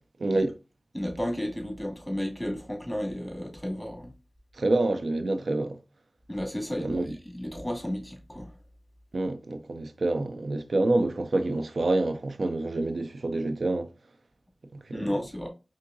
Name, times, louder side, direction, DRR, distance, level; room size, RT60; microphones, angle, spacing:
voice 1, 0.2-0.5 4.6-5.8 6.8-7.1 9.1-13.9 14.9-15.1, right 2 dB, 85° right, 0.4 m, -27 dB
voice 2, 0.9-4.1 6.3-8.5 14.9-15.5, equal, 5° left, 2.1 m, -33 dB
4.5 x 3.7 x 2.5 m
wide cardioid pair, 40°, 0 cm